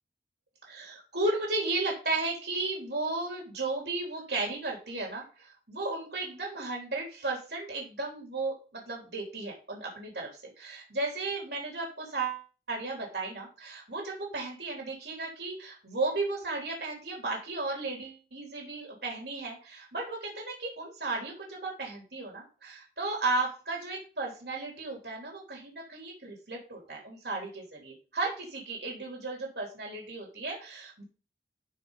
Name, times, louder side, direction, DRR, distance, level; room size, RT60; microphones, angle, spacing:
voice 1, 0.6-10.3 10.6-31.0, right 3 dB, 70° right, -1 dB, 3.5 m, -34 dB
12.5 x 5.5 x 4.1 m, 0.36 s
head